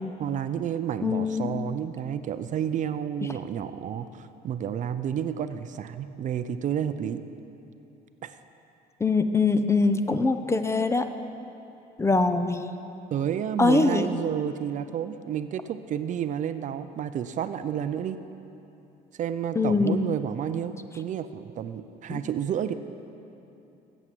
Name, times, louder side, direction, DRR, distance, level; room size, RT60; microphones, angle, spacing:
voice 1, 0.2-7.2 8.2-8.4 13.1-18.2 19.2-22.7, right 9 dB, 50° right, 11 dB, 0.4 m, -30 dB
voice 2, 1.0-1.6 9.0-11.1 12.0-12.7 13.6-14.1 19.6-20.1 22.1-22.2, left 3 dB, 15° left, 9 dB, 0.4 m, -23 dB
8.4 x 8.0 x 7.5 m, 2.8 s
cardioid pair, 110°, 17 cm